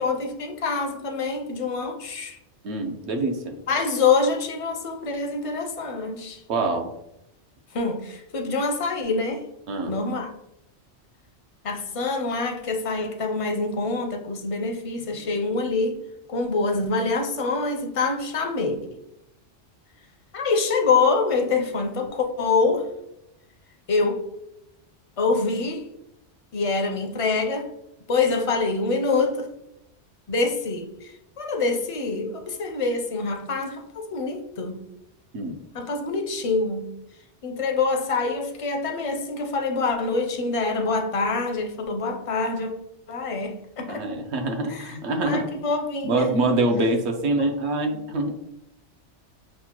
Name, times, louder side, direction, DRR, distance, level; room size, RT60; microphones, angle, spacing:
voice 1, 0.0-2.4 3.7-6.4 7.7-9.4 9.9-10.3 11.6-16.0 16.3-19.0 20.3-22.9 23.9-24.2 25.2-25.8 26.5-27.7 28.1-29.5 30.3-34.9 35.7-36.9 37.4-42.7 43.1-44.0 44.7-45.0 45.2-46.2 47.4-47.5 47.8-48.0, left 4 dB, 50° left, 0.4 m, -25 dB
voice 2, 2.6-3.5 6.5-6.9 9.7-9.9 35.3-35.6 43.9-45.5 46.0-48.3, right 2 dB, 70° right, 0.9 m, -25 dB
6.0 x 2.2 x 2.9 m
omnidirectional pair, 1.2 m